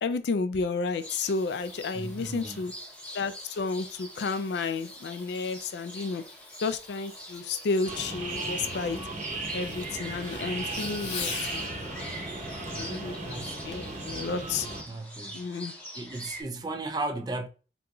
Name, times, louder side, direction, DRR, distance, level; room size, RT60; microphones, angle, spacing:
voice 1, 0.0-2.7 3.1-6.2 6.6-9.0 9.5-11.7 12.6-13.4 13.6-14.7 15.3-15.7, left 4 dB, 65° left, 0.3 m, -31 dB
Fireworks, 0.7-11.7 13.7-14.0 14.6-14.7, left 5 dB, 80° left, 0.8 m, -45 dB
sound 1, 1.0-16.4, equal, 5° left, 0.7 m, -44 dB
voice 2, 1.9-2.6 12.7-13.6 14.9-15.4 15.9-17.5, right 2 dB, 20° right, 0.3 m, -36 dB
sound 2, 7.8-14.8, right 2 dB, 40° right, 0.8 m, -36 dB
3.7 x 2.8 x 2.3 m
head